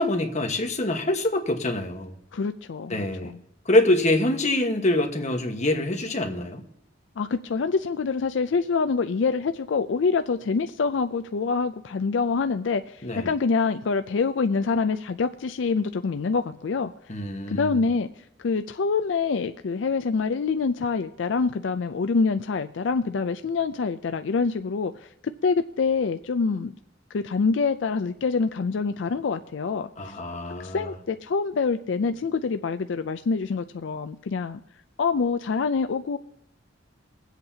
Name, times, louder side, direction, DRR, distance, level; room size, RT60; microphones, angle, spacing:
voice 1, 0.0-2.1 2.9-3.3 3.6-6.6 13.0-13.3 17.1-17.8 30.0-30.9, left 1 dB, 40° left, 3 dB, 1.3 m, -25 dB
voice 2, 2.3-3.4 7.2-16.9 17.5-18.1 18.4-25.1 25.4-26.7 27.1-30.1 30.6-34.6 35.0-36.2, left 4 dB, 80° left, 9 dB, 0.4 m, -26 dB
22.5 x 8.1 x 2.8 m, 0.81 s
head